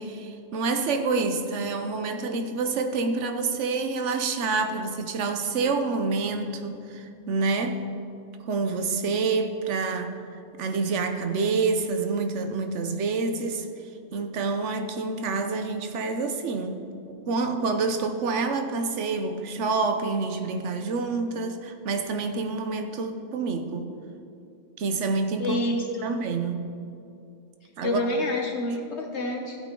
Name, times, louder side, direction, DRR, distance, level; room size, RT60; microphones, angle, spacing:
voice 1, 0.0-7.8 8.5-10.2 10.6-13.7 14.1-16.8 17.3-23.9 24.8-25.6 26.0-26.7 27.8-28.0, right 4 dB, 70° right, 7 dB, 1.1 m, -27 dB
voice 2, 25.4-25.9 27.8-29.6, left 1 dB, 60° left, 2 dB, 1.3 m, -27 dB
15.0 x 8.6 x 3.8 m, 2.5 s
omnidirectional pair, 1.3 m